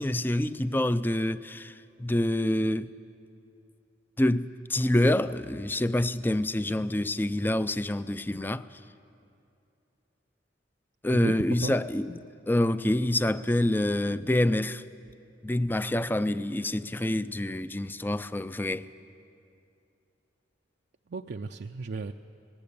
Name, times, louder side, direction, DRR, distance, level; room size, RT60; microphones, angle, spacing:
voice 1, 0.0-1.7 2.0-2.9 4.2-8.6 11.0-12.2 12.5-14.8 15.4-18.9, left 1 dB, 10° left, 0.4 m, -27 dB
voice 2, 11.1-11.7 21.1-22.1, right 4 dB, 60° right, 0.5 m, -34 dB
19.0 x 19.0 x 8.6 m
head